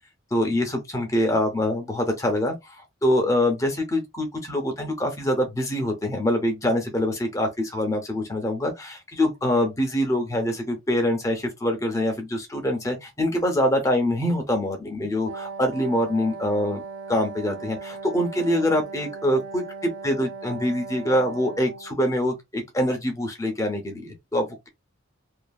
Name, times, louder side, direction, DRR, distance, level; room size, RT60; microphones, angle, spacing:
voice 1, 0.3-2.7 3.0-16.8 17.1-24.7, left 1 dB, 15° left, 0.7 m, -24 dB
Wind instrument woodwind instrument, 15.3-22.0, right 4 dB, 75° right, 0.9 m, -38 dB
2.6 x 2.6 x 2.3 m
head